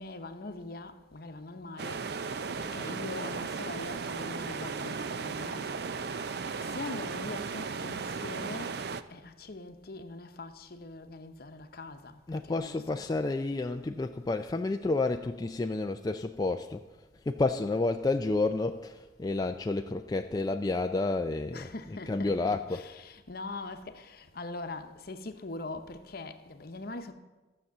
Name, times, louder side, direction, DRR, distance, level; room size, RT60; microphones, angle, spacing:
voice 1, 0.0-5.8 6.2-6.3 6.6-12.8 13.1-13.2 21.5-27.1, left 2 dB, 55° left, 0.9 m, -42 dB
sound 1, 1.8-9.0, right 5 dB, 60° right, 0.5 m, -36 dB
voice 2, 12.3-16.8 17.1-22.9, left 3 dB, 20° left, 0.3 m, -30 dB
14.0 x 6.8 x 7.3 m
head